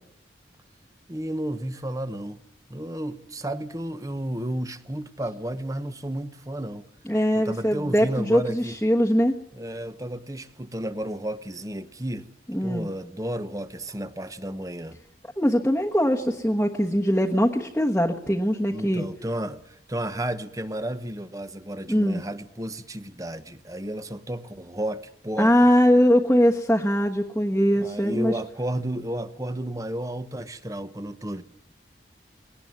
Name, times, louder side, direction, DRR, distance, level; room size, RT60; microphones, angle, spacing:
voice 1, 1.1-2.4 2.7-6.8 7.3-8.7 9.5-12.3 12.6-15.0 18.7-25.7 27.8-31.4, right 1 dB, 20° right, 12 dB, 1.1 m, -32 dB
voice 2, 7.0-9.3 12.5-12.9 15.4-19.1 21.9-22.2 25.4-28.3, equal, 5° left, -2 dB, 1.3 m, -21 dB
20.5 x 18.5 x 9.4 m, 0.78 s
head